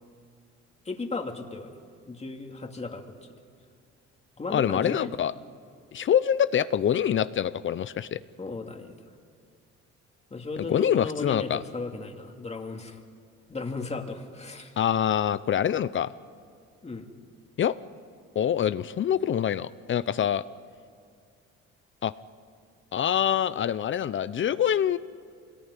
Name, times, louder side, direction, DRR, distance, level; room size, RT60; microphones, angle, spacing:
voice 1, 0.9-1.7 2.1-3.1 4.4-5.1 8.4-9.0 10.3-13.0 13.5-14.7 16.8-17.1, left 3 dB, 20° left, 4 dB, 2.5 m, -35 dB
voice 2, 4.5-5.3 5.9-8.2 10.6-11.6 14.8-16.1 17.6-17.8 18.4-20.4 22.0-22.1 22.9-25.0, left 9 dB, 40° left, 16 dB, 0.6 m, -25 dB
26.0 x 19.5 x 9.8 m, 2.2 s
cardioid pair, 105°, 29 cm